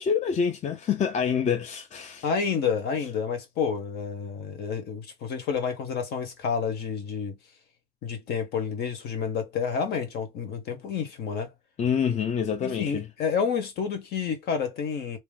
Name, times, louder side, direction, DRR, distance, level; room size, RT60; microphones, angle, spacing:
voice 1, 0.0-2.3 11.8-13.1, left 7 dB, 45° left, 0.7 m, -26 dB
voice 2, 2.2-7.4 8.0-11.5 12.6-15.2, left 6 dB, 70° left, 1.4 m, -29 dB
3.0 x 2.8 x 3.7 m
cardioid pair, 110°, 17 cm